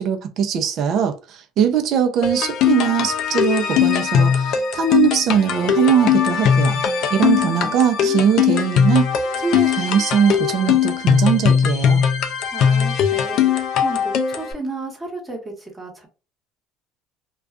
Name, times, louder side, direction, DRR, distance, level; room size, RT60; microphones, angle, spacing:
voice 1, 0.0-6.8 7.1-9.1 9.4-12.0, right 8 dB, 55° right, 0.5 m, -20 dB
sound 1, 2.2-14.5, left 8 dB, 60° left, 0.4 m, -19 dB
voice 2, 7.2-8.4 12.5-13.5 13.8-16.1, right 3 dB, 15° right, 1.1 m, -33 dB
2.4 x 2.2 x 2.4 m
supercardioid pair, 85°, 0 cm